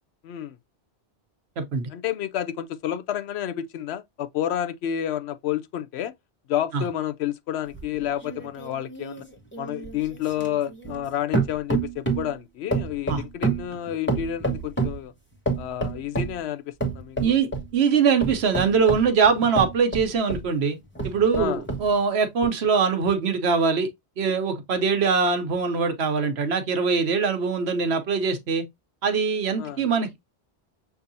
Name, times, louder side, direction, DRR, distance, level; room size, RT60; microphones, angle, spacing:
voice 1, 0.2-0.6 1.9-6.1 6.5-9.2 9.6-15.1 15.6-17.3 21.4-21.6 29.6-29.8, left 10 dB, 75° left, 0.8 m, -30 dB
voice 2, 1.6-1.9 6.7-6.8 13.1-13.2 17.2-17.5 17.7-20.8 21.0-23.9 24.2-28.6 29.0-30.2, right 5 dB, 75° right, 1.1 m, -22 dB
sound 1, 7.7-11.1 11.3-12.3 12.7-15.0 15.5-16.4 16.8-17.7 18.2-20.5 21.0-21.9 22.4-22.5, right 3 dB, 10° left, 1.0 m, -28 dB
6.7 x 2.7 x 2.6 m
omnidirectional pair, 1.1 m